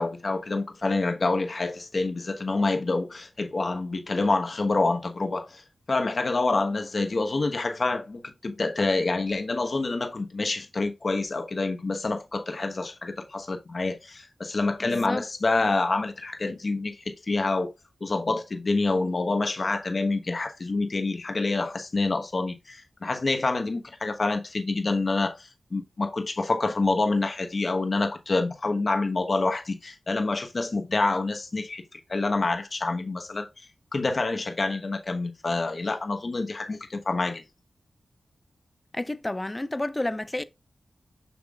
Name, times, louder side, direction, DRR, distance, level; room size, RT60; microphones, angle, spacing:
voice 1, 0.0-5.6 5.9-17.7 18.0-33.5 33.9-37.4, left 3 dB, 50° left, 1.1 m, -27 dB
voice 2, 14.8-15.2 38.9-40.4, left 1 dB, 25° left, 0.5 m, -30 dB
7.1 x 5.9 x 2.4 m
cardioid pair, 55°, 0 cm